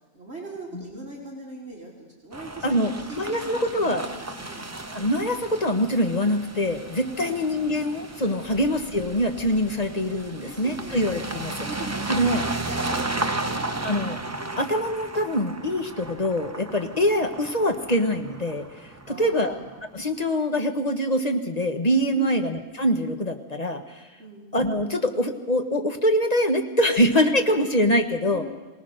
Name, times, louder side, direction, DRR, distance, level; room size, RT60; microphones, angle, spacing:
voice 1, 0.1-4.7 7.2-7.4 10.4-11.0 11.6-13.9 14.4-14.7 19.0-19.6 22.1-22.4 24.2-24.4 28.3-28.5, right 1 dB, 40° right, -2 dB, 3.3 m, -40 dB
sound 1, 2.3-19.9, right 2 dB, 15° right, 0.5 m, -34 dB
voice 2, 2.6-4.0 4.9-11.7 12.1-12.4 13.8-14.2 14.6-19.6 19.9-24.1 24.5-28.4, equal, 25° left, 5 dB, 1.3 m, -24 dB
23.5 x 18.5 x 6.6 m, 1.2 s
omnidirectional pair, 1.6 m